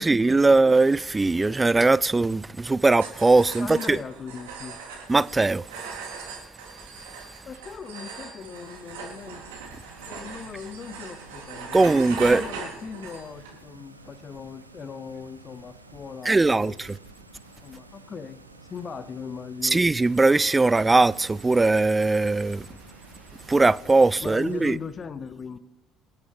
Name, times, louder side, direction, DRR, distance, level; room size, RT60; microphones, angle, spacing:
voice 1, 0.0-4.0 5.1-5.7 11.7-12.4 16.3-17.0 19.6-22.7 23.5-24.8, right 3 dB, 15° right, 0.3 m, -20 dB
sound 1, 2.9-13.5, right 5 dB, 70° right, 3.6 m, -39 dB
voice 2, 3.6-4.8 7.5-9.4 10.1-16.8 17.6-19.8 24.2-25.6, left 6 dB, 35° left, 0.6 m, -39 dB
sound 2, 8.4-24.7, right 2 dB, 85° right, 0.8 m, -50 dB
27.5 x 11.5 x 3.4 m
figure-of-eight pair, 55°, 0 cm